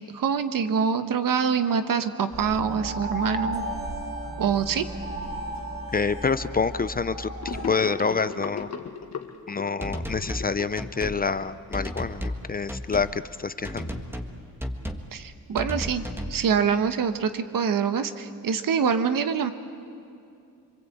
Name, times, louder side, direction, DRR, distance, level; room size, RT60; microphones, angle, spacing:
voice 1, 0.1-3.6 4.4-4.8 15.1-19.5, right 6 dB, 70° right, 9 dB, 1.3 m, -25 dB
sound 1, 2.3-7.7, right 1 dB, 35° right, 4.4 m, -34 dB
voice 2, 5.9-8.7 9.5-13.9, left 5 dB, 25° left, 13 dB, 0.5 m, -27 dB
Gurgling / Sink (filling or washing), 7.4-11.9, left 6 dB, 50° left, 1.6 m, -37 dB
sound 2, 9.8-10.5 10.8-11.2 11.7-12.4 12.7-13.1 13.6-14.3 14.6-15.1 15.6-16.4, equal, 5° right, 1.6 m, -33 dB
26.5 x 23.5 x 8.6 m, 2.5 s
cardioid pair, 120°, 35 cm